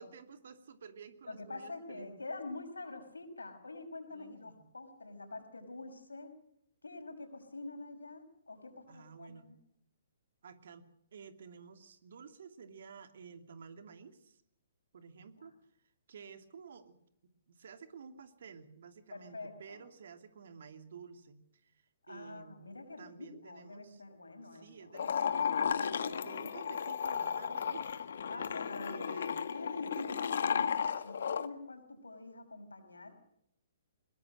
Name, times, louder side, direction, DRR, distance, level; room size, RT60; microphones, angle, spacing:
voice 1, 0.0-2.2 4.1-4.6 8.9-9.5 10.4-14.4 14.9-15.5 16.1-22.6 23.0-24.0 24.4-28.0 28.3-28.5 28.8-29.6, right 6 dB, 60° right, 8 dB, 2.7 m, -52 dB
voice 2, 1.3-6.3 6.8-9.6 15.4-15.5 19.1-19.8 22.0-25.0 28.3-29.1 29.5-33.1, left 2 dB, 85° left, 6 dB, 5.7 m, -46 dB
sound 1, 24.9-31.5, left 7 dB, 65° left, 1.5 m, -34 dB
22.0 x 21.0 x 6.5 m, 0.74 s
figure-of-eight pair, 125°, 0 cm